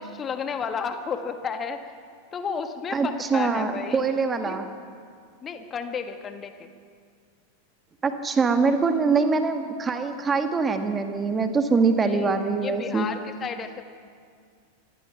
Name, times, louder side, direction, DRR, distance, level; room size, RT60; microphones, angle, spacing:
voice 1, 0.0-1.9 2.3-4.0 4.4-4.6 5.4-6.7 12.0-12.3 12.6-13.8, left 6 dB, 25° left, 7 dB, 1.5 m, -32 dB
voice 2, 2.9-4.7 8.0-13.1, right 4 dB, 15° right, 7 dB, 1.7 m, -23 dB
26.0 x 19.5 x 5.8 m, 2.1 s
figure-of-eight pair, 90°, 0 cm